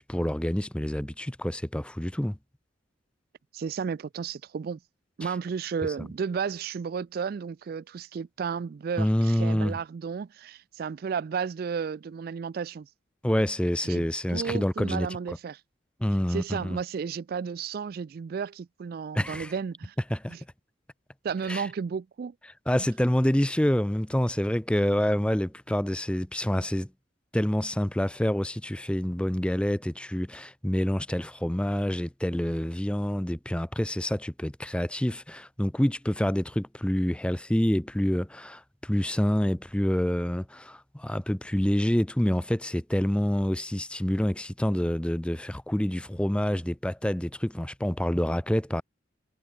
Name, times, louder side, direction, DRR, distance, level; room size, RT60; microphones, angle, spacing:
voice 1, 0.0-2.4 5.2-5.3 9.0-9.8 13.2-15.1 16.0-16.8 19.1-19.5 20.1-20.4 21.5-21.7 22.7-26.9 27.3-48.8, equal, 5° left, 0.5 m, -27 dB
voice 2, 3.5-4.8 5.2-12.9 13.8-15.6 16.3-19.9 20.3-20.4 21.2-22.3, right 6 dB, 50° right, 0.3 m, -33 dB
head